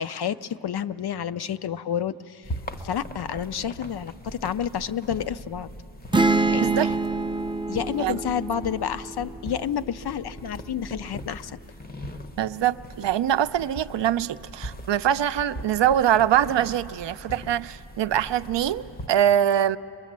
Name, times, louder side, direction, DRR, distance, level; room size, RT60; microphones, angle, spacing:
voice 1, 0.0-2.5 2.8-5.7 6.5-6.9 7.7-11.6, left 8 dB, 55° left, 14 dB, 0.6 m, -30 dB
sound 1, 2.4-19.1, equal, 20° left, 0.7 m, -41 dB
sound 2, 6.1-9.9, right 3 dB, 10° right, 0.5 m, -26 dB
voice 2, 6.6-6.9 8.0-8.2 12.4-19.8, right 10 dB, 65° right, 12 dB, 0.6 m, -23 dB
23.0 x 22.5 x 7.4 m, 2.8 s
wide cardioid pair, 120°, 47 cm